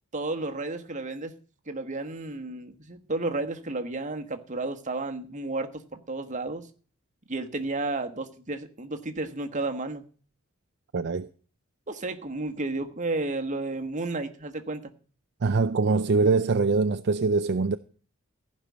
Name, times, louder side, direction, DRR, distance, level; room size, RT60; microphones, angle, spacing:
voice 1, 0.1-1.3 1.7-6.7 7.3-10.0 11.9-14.9, right 2 dB, 35° right, 1.3 m, -32 dB
voice 2, 10.9-11.3 15.4-17.8, right 4 dB, 55° right, 0.5 m, -23 dB
15.0 x 5.4 x 8.4 m
head